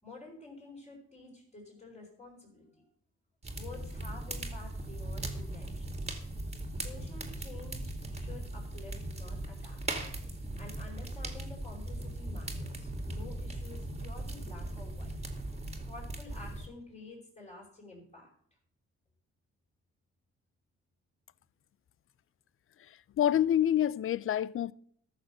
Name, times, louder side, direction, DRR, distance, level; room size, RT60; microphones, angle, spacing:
voice 1, 0.0-2.9 3.6-6.0 6.8-9.8 10.6-15.1 15.9-18.3, left 3 dB, 20° left, 5.3 m, -50 dB
sound 1, 3.4-16.7, right 1 dB, 20° right, 2.4 m, -39 dB
voice 2, 22.9-24.7, left 10 dB, 45° left, 0.5 m, -27 dB
13.5 x 6.8 x 6.6 m
cardioid pair, 90°, 30 cm